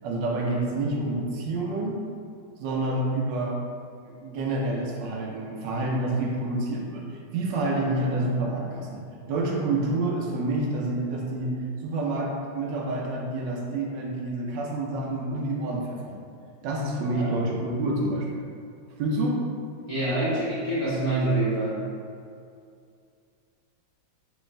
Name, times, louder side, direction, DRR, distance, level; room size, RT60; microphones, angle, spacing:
voice 1, 0.0-2.0 2.6-3.6 4.0-9.0 9.3-16.2 16.6-18.5 19.0-19.4 20.3-20.4, right 2 dB, 75° right, -2 dB, 1.1 m, -28 dB
voice 2, 19.9-21.7, right 2 dB, 25° left, -14 dB, 0.7 m, -26 dB
3.3 x 3.1 x 3.1 m, 2.4 s
omnidirectional pair, 2.3 m